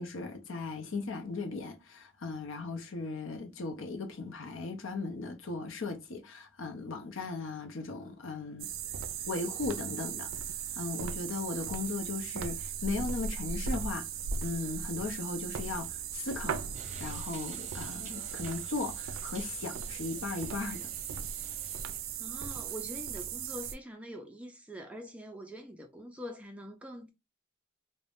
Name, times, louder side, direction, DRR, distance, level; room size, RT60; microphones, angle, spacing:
voice 1, 0.0-8.7 9.3-10.3 10.8-14.1 14.4-16.6 17.0-20.9, left 3 dB, 75° left, 0.6 m, -37 dB
Jungle Walking on wood Choco, 8.6-23.7, right 6 dB, 80° right, 0.4 m, -38 dB
sound 1, 16.7-22.0, right 2 dB, 35° right, 0.7 m, -52 dB
voice 2, 22.2-27.1, equal, 5° right, 0.3 m, -44 dB
2.4 x 2.1 x 3.4 m
head